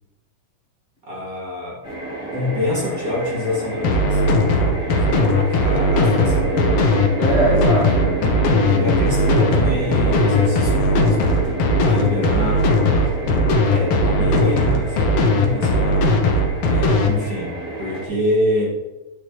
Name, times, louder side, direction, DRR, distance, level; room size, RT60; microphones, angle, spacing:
voice 1, 1.1-1.8 2.3-7.2 8.3-13.1 13.7-16.2 16.6-17.5 17.8-18.8, left 1 dB, 30° right, -5 dB, 1.8 m, -27 dB
sound 1, 1.8-18.1, right 2 dB, 20° left, 2.3 m, -29 dB
sound 2, 3.8-17.1, left 1 dB, 65° left, 1.6 m, -18 dB
voice 2, 7.2-9.1 12.0-12.2, equal, 80° left, -6 dB, 0.5 m, -24 dB
10.5 x 6.3 x 3.1 m, 1.1 s
omnidirectional pair, 4.0 m